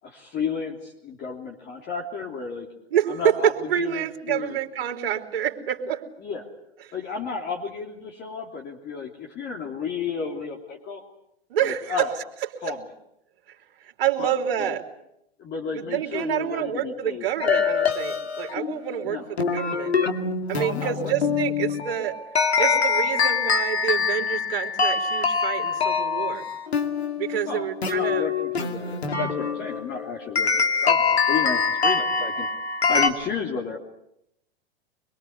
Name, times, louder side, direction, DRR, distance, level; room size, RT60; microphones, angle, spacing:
voice 1, 0.0-2.7 3.1-3.5 3.8-4.6 6.2-6.5 6.9-11.0 11.6-12.1 12.6-12.8 14.2-14.3 14.6-14.8 15.4-17.3 19.0-19.2 20.5-21.3 27.5-32.5 32.9-33.8, left 5 dB, 30° left, 0 dB, 3.2 m, -32 dB
voice 2, 2.9-6.0 6.9-7.0 11.5-12.1 13.8-14.8 15.7-19.9 20.5-22.2 22.6-26.4 27.2-28.3, right 10 dB, 60° right, 4 dB, 3.4 m, -27 dB
sound 1, 17.4-33.1, left 5 dB, 80° left, 2.5 m, -24 dB
25.0 x 22.5 x 8.1 m, 0.79 s
figure-of-eight pair, 100°, 32 cm